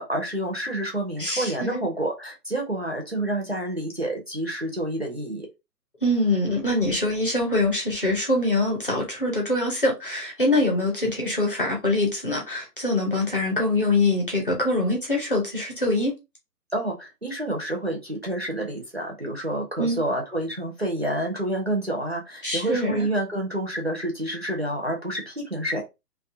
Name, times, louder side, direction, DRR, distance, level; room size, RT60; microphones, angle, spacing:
voice 1, 0.0-5.5 16.7-25.8, right 1 dB, 45° right, 0.5 m, -28 dB
voice 2, 1.2-1.8 6.0-16.1 19.8-20.0 22.4-23.1, left 2 dB, 35° left, 0.7 m, -24 dB
2.3 x 2.2 x 2.6 m
hypercardioid pair, 180°, 48 cm